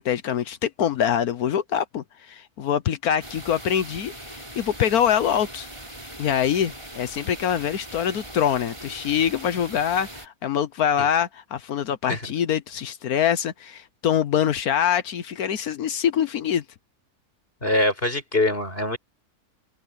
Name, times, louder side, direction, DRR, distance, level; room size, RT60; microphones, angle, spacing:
voice 1, 0.0-4.1 4.6-5.7 6.2-16.6, left 9 dB, 75° left, 1.4 m, -24 dB
sound 1, 3.2-10.3, right 1 dB, 20° right, 4.8 m, -40 dB
voice 2, 17.6-19.0, left 1 dB, 35° left, 5.9 m, -23 dB
omnidirectional pair, 1.6 m